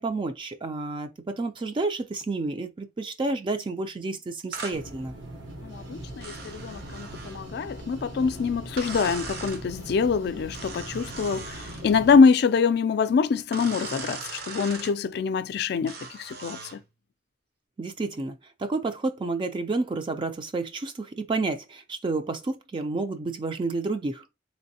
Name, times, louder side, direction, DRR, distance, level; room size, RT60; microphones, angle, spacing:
voice 1, 0.0-5.2 17.8-24.2, right 3 dB, 30° right, 0.3 m, -30 dB
sound 1, 4.5-4.8 6.2-7.4 8.8-9.6 10.5-11.9 13.5-14.9 15.9-16.8, right 4 dB, 60° right, 0.8 m, -39 dB
sound 2, 4.7-12.2, right 1 dB, 85° right, 1.1 m, -41 dB
voice 2, 5.6-16.8, left 5 dB, 65° left, 0.3 m, -24 dB
3.3 x 3.1 x 2.7 m
head